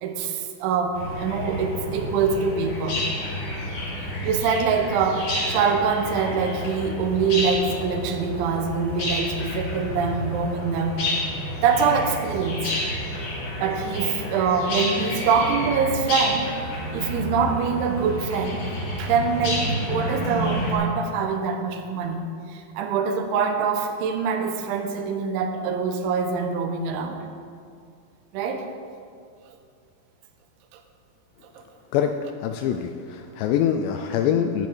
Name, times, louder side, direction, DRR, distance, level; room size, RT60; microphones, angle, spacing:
voice 1, 0.0-3.0 4.2-11.0 11.6-12.7 13.6-16.5 16.9-18.7 19.0-22.2 22.5-27.2 28.3-28.7 31.6-31.7, right 5 dB, 85° right, 5 dB, 3.2 m, -24 dB
sound 1, 0.9-20.7, left 1 dB, 50° left, 3.4 m, -30 dB
voice 2, 32.4-34.7, left 9 dB, 85° left, 6 dB, 2.5 m, -24 dB
13.0 x 8.4 x 4.5 m, 2.3 s
omnidirectional pair, 5.4 m